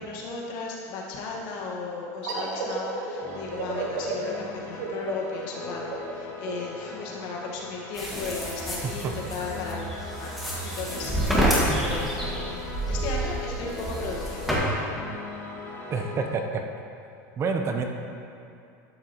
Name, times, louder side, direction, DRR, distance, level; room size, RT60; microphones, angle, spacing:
voice 1, 0.0-9.9 10.2-10.3 10.6-14.9, left 4 dB, 60° left, -2 dB, 1.5 m, -36 dB
sound 1, 2.2-7.5, right 3 dB, 85° right, 1.2 m, -33 dB
sound 2, 3.2-16.3, left 3 dB, 20° left, 1.7 m, -40 dB
sound 3, 7.9-14.6, right 1 dB, ahead, 1.7 m, -29 dB
voice 2, 9.0-9.3 15.9-16.6 17.4-17.8, right 4 dB, 30° right, 4 dB, 0.6 m, -28 dB
12.0 x 6.1 x 3.0 m, 2.5 s
supercardioid pair, 125°, 9 cm